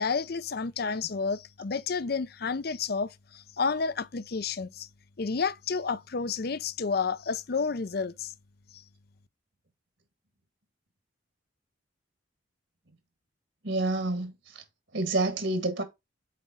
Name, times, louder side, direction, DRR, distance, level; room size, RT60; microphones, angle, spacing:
voice 1, 0.0-4.9 5.2-8.3 8.7-8.8, left 5 dB, 50° left, 0.5 m, -30 dB
voice 2, 13.6-14.3 14.9-15.8, right 2 dB, 70° right, 1.9 m, -28 dB
7.5 x 4.8 x 3.8 m
head